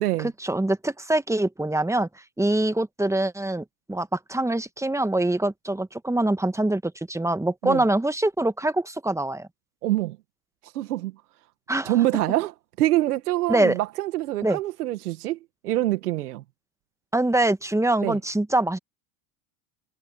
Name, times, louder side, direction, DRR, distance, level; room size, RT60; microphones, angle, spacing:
voice 1, 0.4-2.1 2.4-9.5 11.7-11.9 13.5-13.8 14.4-14.6 17.1-18.8, right 1 dB, 5° right, 1.6 m, -24 dB
voice 2, 9.8-10.2 10.6-11.1 11.8-12.5 12.8-15.4 15.6-16.4 18.0-18.2, right 15 dB, 90° right, 1.9 m, -25 dB
hypercardioid pair, 85°, 44 cm